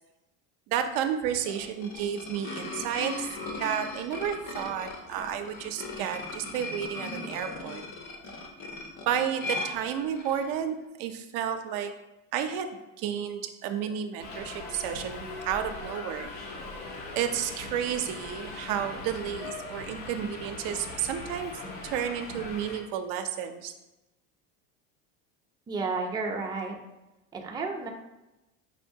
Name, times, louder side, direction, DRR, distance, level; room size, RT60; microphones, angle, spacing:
voice 1, 0.7-3.3 3.6-7.8 9.1-11.9 12.3-12.7 13.0-16.3 17.1-21.5 21.8-23.7, right 9 dB, 65° right, 7 dB, 0.5 m, -31 dB
sound 1, 1.2-10.5, left 2 dB, 50° left, 0.8 m, -38 dB
Subway metro underground, 14.2-22.8, left 3 dB, 75° left, 0.9 m, -40 dB
voice 2, 25.7-26.8 27.3-27.9, right 4 dB, 10° right, 1 dB, 0.5 m, -31 dB
5.4 x 2.8 x 2.6 m, 0.99 s
supercardioid pair, 105°, 37 cm